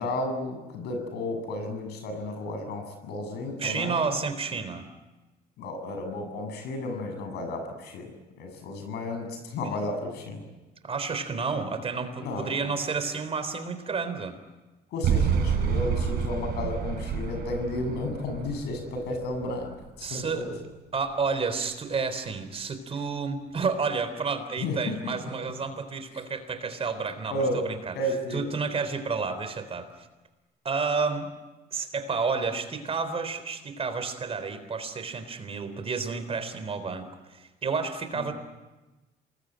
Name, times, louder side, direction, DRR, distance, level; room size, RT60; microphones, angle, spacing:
voice 1, 0.0-4.1 5.6-8.1 8.4-10.4 12.2-12.6 14.9-20.5 24.6-25.1 26.1-26.2 27.3-27.6 27.9-28.4 38.2-38.3, left 2 dB, 80° left, 6 dB, 7.5 m, -33 dB
voice 2, 3.6-4.9 9.6-9.7 10.8-14.4 20.0-20.4 20.9-28.0 28.3-29.9 30.6-31.3 31.7-38.3, right 5 dB, 35° right, 10 dB, 3.8 m, -30 dB
sound 1, 15.0-20.2, right 7 dB, 70° right, 7.9 m, -29 dB
28.0 x 21.0 x 9.1 m, 1.1 s
cardioid pair, 110°, 17 cm